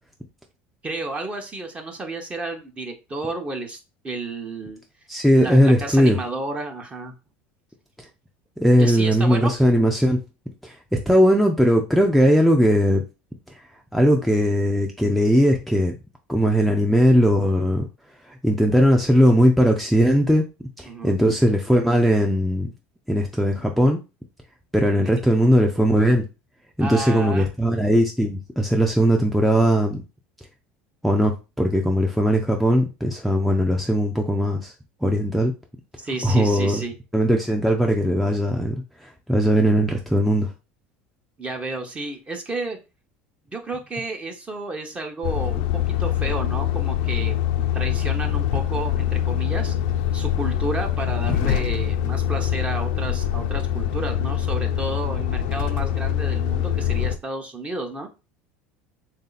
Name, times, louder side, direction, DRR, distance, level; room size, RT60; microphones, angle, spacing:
voice 1, 0.8-3.8 4.0-4.8 5.4-7.1 8.8-9.5 20.8-21.2 26.8-27.5 36.0-36.9 41.4-42.8 43.5-45.7 46.0-47.4 47.7-49.7 50.1-58.1, right 2 dB, 25° right, 4 dB, 0.9 m, -31 dB
voice 2, 5.1-6.2 8.6-10.2 10.6-13.0 13.9-16.0 16.3-17.9 18.3-20.5 20.8-22.7 23.1-24.0 24.7-26.3 26.8-30.0 31.0-34.7 35.0-35.5 36.2-36.8 37.1-40.5 51.3-51.4, equal, ahead, 1 dB, 0.5 m, -19 dB
Truck, 45.2-57.2, left 10 dB, 75° left, 0.5 m, -24 dB
3.3 x 2.7 x 3.9 m, 0.29 s
supercardioid pair, 100°, 5 cm